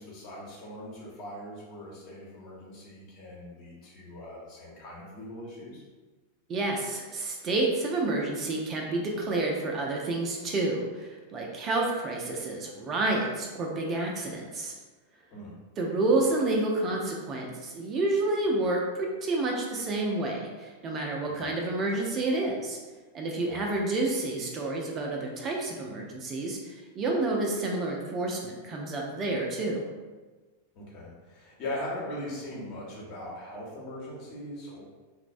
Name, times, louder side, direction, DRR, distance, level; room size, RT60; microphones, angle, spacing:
voice 1, 0.0-5.8 15.3-15.5 21.3-21.5 23.5-23.7 30.7-34.8, left 1 dB, 40° left, -4 dB, 0.8 m, -40 dB
voice 2, 6.5-14.7 15.8-22.8 23.1-29.8, right 2 dB, 30° right, -1 dB, 0.4 m, -29 dB
3.1 x 2.0 x 2.5 m, 1.3 s
figure-of-eight pair, 90°, 0 cm